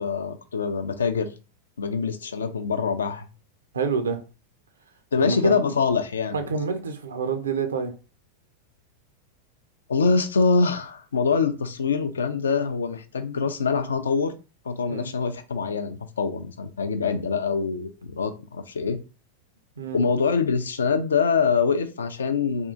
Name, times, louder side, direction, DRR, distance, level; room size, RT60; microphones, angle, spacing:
voice 1, 0.0-1.3 1.8-3.3 5.1-6.4 9.9-14.3 14.7-19.0 19.9-22.7, left 5 dB, 70° left, 0.4 m, -24 dB
voice 2, 3.7-4.2 5.2-5.7 6.3-7.9 14.9-15.1 19.8-20.0, right 5 dB, 70° right, 0.5 m, -28 dB
3.5 x 2.4 x 2.6 m
figure-of-eight pair, 90°, 0 cm